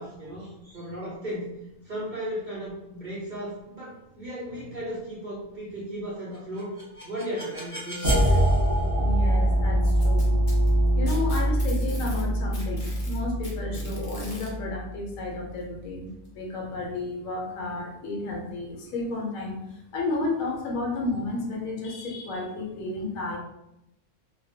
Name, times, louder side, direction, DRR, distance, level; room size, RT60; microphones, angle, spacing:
voice 1, 0.0-1.6 1.9-6.7 7.0-8.5 13.7-14.1, equal, 60° right, -7 dB, 0.5 m, -36 dB
sound 1, 6.6-15.5, right 1 dB, 35° right, 0.8 m, -24 dB
voice 2, 9.0-10.3 11.0-16.1 16.3-23.4, left 2 dB, 70° left, 0 dB, 1.0 m, -32 dB
Packing tape duct tape, 9.8-12.2 12.5-14.5 15.6-15.7 16.2-16.3 17.2-17.3, left 2 dB, 50° left, 0.6 m, -44 dB
2.2 x 2.2 x 2.6 m, 0.84 s
omnidirectional pair, 1.5 m